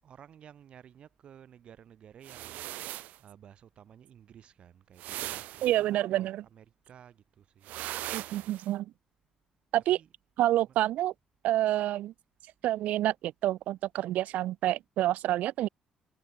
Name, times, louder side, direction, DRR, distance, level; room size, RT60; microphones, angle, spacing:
voice 1, 0.0-2.6 3.2-7.7 9.9-10.1 10.6-10.8, right 9 dB, 45° right, 7.9 m, -54 dB
sound 1, 2.2-3.2 5.0-5.8 7.6-8.7, right 16 dB, 90° right, 1.2 m, -39 dB
voice 2, 5.6-6.4 8.1-8.9 9.7-10.0 10.4-11.1 11.4-12.1 12.6-15.7, right 14 dB, 70° right, 0.7 m, -28 dB
cardioid pair, 165°, 3 cm